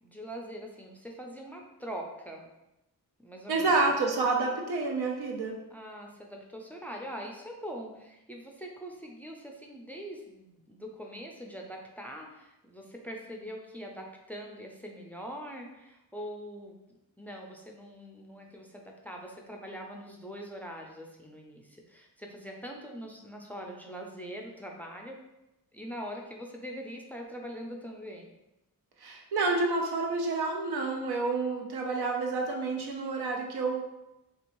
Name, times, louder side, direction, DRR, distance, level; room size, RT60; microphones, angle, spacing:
voice 1, 0.0-2.5 3.2-3.9 5.7-16.8 17.2-25.2 25.7-28.3, equal, 5° left, 1 dB, 0.4 m, -43 dB
voice 2, 3.5-5.6 29.0-33.8, right 3 dB, 80° right, 2 dB, 0.7 m, -29 dB
2.9 x 2.6 x 2.9 m, 0.93 s
cardioid pair, 85°, 38 cm